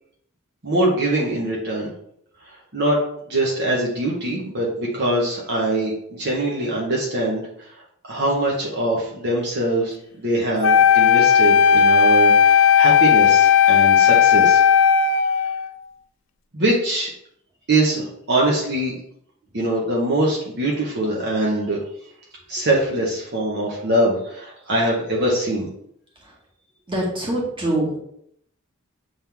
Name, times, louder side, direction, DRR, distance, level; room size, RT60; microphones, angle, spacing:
voice 1, 0.6-1.9 2.7-3.0 3.3-7.4 8.1-14.6 16.5-17.1 17.7-18.9 19.5-21.8 22.5-25.7, right 1 dB, 55° right, -3 dB, 1.3 m, -22 dB
Wind instrument woodwind instrument, 10.6-15.7, left 7 dB, 65° left, 0.4 m, -15 dB
voice 2, 26.9-28.0, right 1 dB, 25° right, -4 dB, 2.0 m, -24 dB
7.5 x 4.1 x 3.6 m, 0.71 s
head